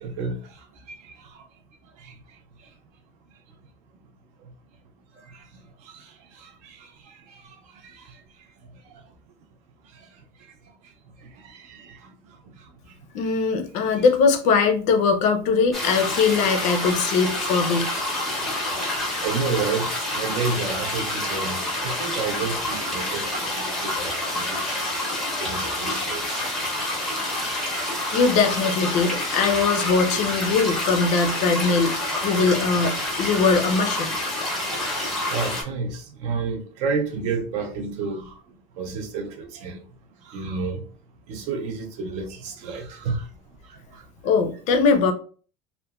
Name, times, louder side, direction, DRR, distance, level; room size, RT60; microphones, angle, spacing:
voice 1, 0.0-0.4 0.9-1.1 2.0-2.1 5.3-5.4 5.8-6.1 6.4-7.4 7.8-8.0 11.4-12.1 13.9-14.0 19.2-24.8 25.4-26.4 35.2-38.3 38.8-39.8 40.3-40.8 41.3-43.3 43.9-44.0, right 4 dB, 45° right, 0.4 m, -30 dB
voice 2, 13.1-17.9 28.1-34.2 44.2-45.1, left 5 dB, 45° left, 0.4 m, -21 dB
sound 1, 15.7-35.6, left 1 dB, ahead, 0.6 m, -28 dB
2.9 x 2.1 x 2.2 m
cardioid pair, 165°, 17 cm